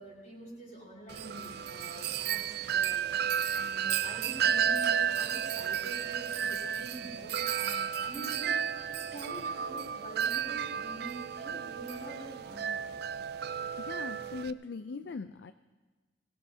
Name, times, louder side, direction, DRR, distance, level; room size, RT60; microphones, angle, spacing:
voice 1, 0.0-12.9, right 1 dB, 45° left, -4 dB, 5.4 m, -46 dB
Wind chime, 1.1-14.5, right 8 dB, 60° right, 0.4 m, -32 dB
voice 2, 13.8-15.5, left 4 dB, 65° left, 10 dB, 0.4 m, -40 dB
21.5 x 18.0 x 2.8 m, 1.3 s
head